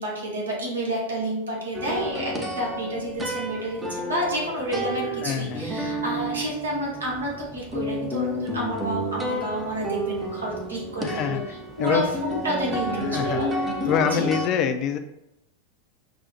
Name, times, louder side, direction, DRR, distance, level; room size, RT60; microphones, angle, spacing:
voice 1, 0.0-11.4 11.8-13.6 14.1-14.3, equal, 75° right, -3 dB, 1.0 m, -29 dB
sound 1, 1.7-14.5, equal, 10° right, 0.6 m, -31 dB
voice 2, 5.2-5.7 11.0-11.4 11.8-12.1 13.0-15.0, left 7 dB, 35° left, 7 dB, 0.4 m, -26 dB
5.9 x 2.0 x 2.8 m, 0.84 s
figure-of-eight pair, 90°, 0 cm